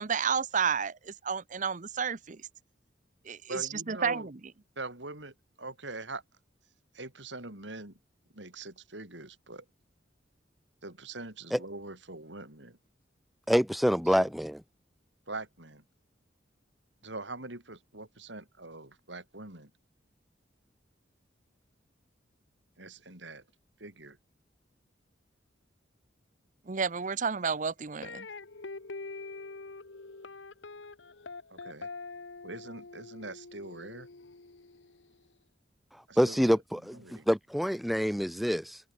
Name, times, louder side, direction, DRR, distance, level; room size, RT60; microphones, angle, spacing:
voice 1, 0.0-2.5 3.2-4.4 26.7-28.3, right 6 dB, 45° right, 0.8 m, -31 dB
voice 2, 3.5-4.3 4.8-6.2 6.9-8.0 8.3-9.6 10.8-12.8 14.1-14.3 15.3-15.8 17.0-19.7 22.8-23.4 23.8-24.2 31.5-31.9 32.4-34.1 36.1-36.6 36.9-37.3, right 2 dB, 80° right, 6.4 m, -43 dB
voice 3, 13.5-14.6 36.2-38.8, equal, ahead, 0.6 m, -26 dB
sound 1, 28.0-35.1, left 3 dB, 85° left, 1.4 m, -45 dB
head